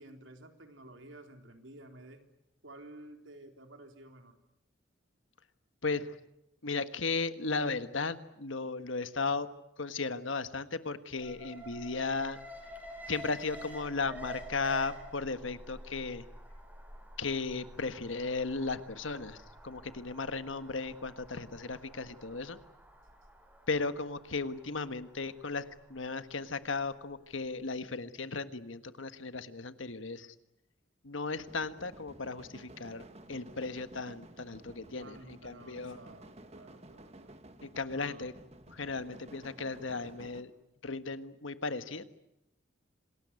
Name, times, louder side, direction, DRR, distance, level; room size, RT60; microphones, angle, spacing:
voice 1, 0.0-2.2 2.6-4.4 35.0-37.4 37.9-38.3, right 1 dB, 80° right, 5 dB, 3.8 m, -52 dB
voice 2, 5.8-6.1 6.6-9.5 9.8-12.4 13.1-16.2 17.2-19.4 19.6-22.6 23.7-25.6 25.9-30.3 31.0-33.0 33.3-36.0 37.6-38.3 38.7-40.5 40.8-42.0, left 4 dB, 80° left, 11 dB, 1.5 m, -35 dB
Alarm, 11.2-27.3 27.6-27.7, equal, 10° right, 4.9 m, -50 dB
sound 1, 31.4-40.4, right 1 dB, 35° right, 1.7 m, -53 dB
27.0 x 20.0 x 9.6 m, 0.86 s
head